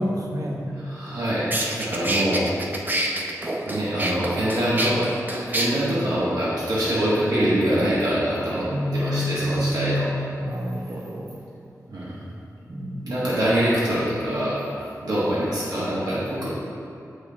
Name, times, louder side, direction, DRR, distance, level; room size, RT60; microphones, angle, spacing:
voice 1, 0.0-0.7 8.7-10.1 10.4-11.4 12.7-13.1, equal, 60° right, 0 dB, 0.9 m, -27 dB
voice 2, 0.8-1.5 1.8-2.5 3.7-5.1 5.4-10.1 11.9-12.2 13.0-16.5, right 1 dB, 85° right, -9 dB, 1.5 m, -24 dB
sound 1, 1.1-1.2 1.5-5.7, right 1 dB, 30° right, 0.6 m, -27 dB
8.0 x 6.4 x 2.4 m, 2.7 s
wide cardioid pair, 65°, 7 cm